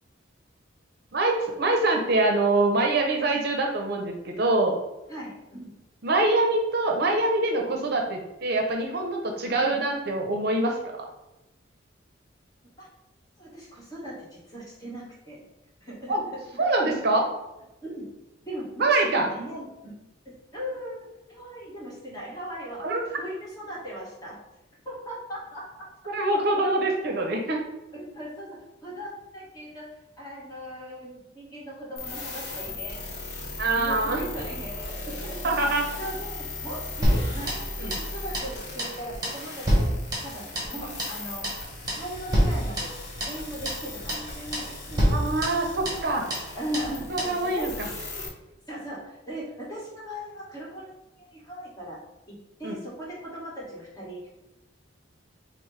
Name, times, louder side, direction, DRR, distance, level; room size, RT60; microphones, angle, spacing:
voice 1, 1.1-4.8 6.0-11.1 16.1-16.2 16.6-17.2 18.8-19.3 22.8-23.0 26.1-27.6 33.6-34.3 35.4-35.9 37.8-37.9 45.1-46.3 47.1-47.9 52.6-52.8, right 2 dB, 55° right, 2 dB, 0.6 m, -24 dB
voice 2, 5.1-5.7 9.6-9.7 12.8-12.9 13.4-15.4 15.8-16.1 17.8-18.1 18.4-19.9 20.2-22.8 23.2-24.4 24.8-25.8 27.9-29.9 30.2-33.1 33.7-35.4 36.0-39.9 40.2-41.5 41.9-45.0 46.6-48.3 48.7-52.0 52.3-54.3, equal, 20° left, -6 dB, 1.4 m, -38 dB
sound 1, 32.0-48.3, left 2 dB, 55° left, 0.9 m, -38 dB
sound 2, 37.0-38.1 38.3-38.5 38.8-39.0 39.2-40.7 41.0-41.2 41.4-41.6 41.9-42.1 42.3-43.4 43.7-43.8 44.1-44.3 44.5-44.7 45.0-46.1 46.3-46.5 46.7-46.9 47.2-47.4, equal, 20° right, 1.1 m, -26 dB
6.0 x 2.1 x 3.2 m, 0.96 s
head